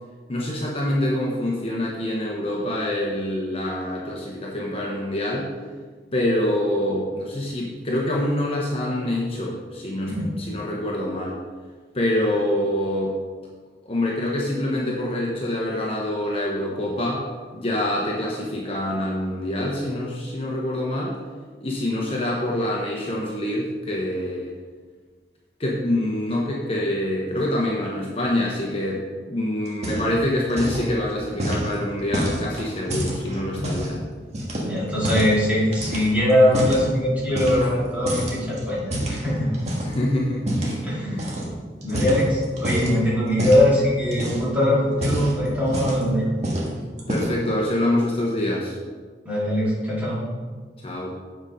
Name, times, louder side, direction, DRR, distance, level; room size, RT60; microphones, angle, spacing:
voice 1, 0.3-5.5 6.1-11.4 11.9-13.1 13.8-17.2 17.5-21.2 21.6-24.5 25.6-34.0 39.8-40.8 41.1-41.5 41.9-42.2 47.1-48.7 50.8-51.1, left 1 dB, 35° left, -3 dB, 1.0 m, -26 dB
sound 1, 29.7-30.2 30.5-30.9 31.4-33.9 34.3-35.4 35.7-36.9 37.3-37.8 38.1-40.0 40.5-40.8 41.2-41.5 41.8-42.9 43.4-43.7 44.1-44.5 44.9-46.1 46.4-46.7 47.0-47.5, right 1 dB, 40° right, 1.6 m, -27 dB
voice 2, 34.6-39.5 40.8-41.4 41.8-46.3 49.2-50.2, left 1 dB, 10° right, -7 dB, 2.5 m, -21 dB
8.1 x 5.0 x 5.4 m, 1.5 s
head